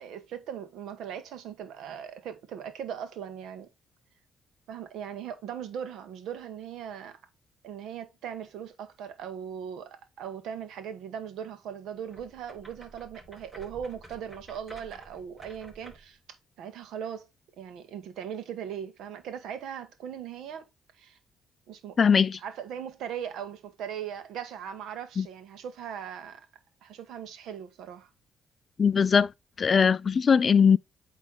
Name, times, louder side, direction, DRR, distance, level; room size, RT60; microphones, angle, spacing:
voice 1, 0.0-3.7 4.7-7.2 7.6-16.2 16.6-17.3 17.6-20.7 21.0-21.2 21.7-26.5 26.8-28.1, right 8 dB, 80° right, 1.4 m, -39 dB
sound 1, 12.1-16.2, right 1 dB, 5° right, 4.4 m, -50 dB
voice 2, 22.0-22.4 25.2-25.3 28.8-29.3 29.6-30.8, left 6 dB, 45° left, 0.4 m, -20 dB
8.5 x 3.3 x 4.2 m
cardioid pair, 90°, 0 cm